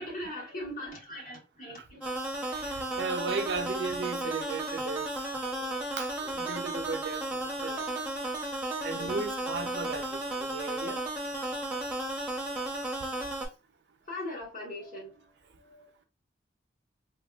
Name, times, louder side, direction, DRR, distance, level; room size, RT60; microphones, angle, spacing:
voice 1, 0.0-2.0 8.9-9.3 14.1-16.0, left 1 dB, 45° left, 1.3 m, -40 dB
sound 1, 2.0-13.5, right 1 dB, 10° right, 0.7 m, -34 dB
voice 2, 2.5-5.1 6.0-7.9 8.8-11.0, right 4 dB, 65° right, 0.5 m, -36 dB
3.3 x 2.3 x 2.2 m
head